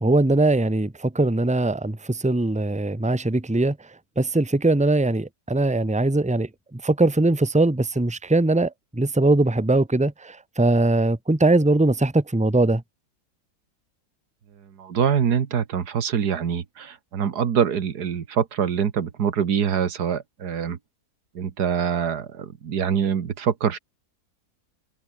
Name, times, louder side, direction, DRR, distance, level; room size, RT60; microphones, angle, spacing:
voice 1, 0.0-3.8 4.2-12.8, right 2 dB, 5° right, 1.2 m, -21 dB
voice 2, 14.6-20.8 21.4-23.8, right 7 dB, 90° right, 2.0 m, -24 dB
omnidirectional pair, 1.7 m